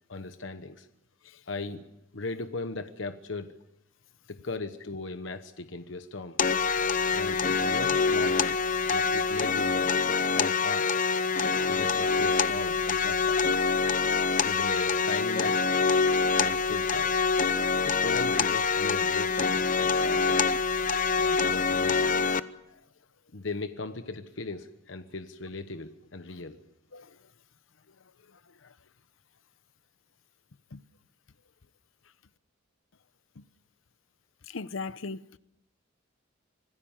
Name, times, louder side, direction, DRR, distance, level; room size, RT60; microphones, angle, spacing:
voice 1, 0.1-0.9 1.5-1.9 2.1-3.6 4.3-6.4 7.1-8.6 8.9-10.9 11.6-13.6 14.4-15.7 16.4-17.2 17.8-20.6 21.2-22.3 23.3-26.6, left 3 dB, 70° left, 1.1 m, -38 dB
sound 1, 6.4-22.4, left 5 dB, 40° left, 0.8 m, -25 dB
voice 2, 34.5-35.4, left 4 dB, 85° left, 0.8 m, -38 dB
26.0 x 18.5 x 7.3 m
head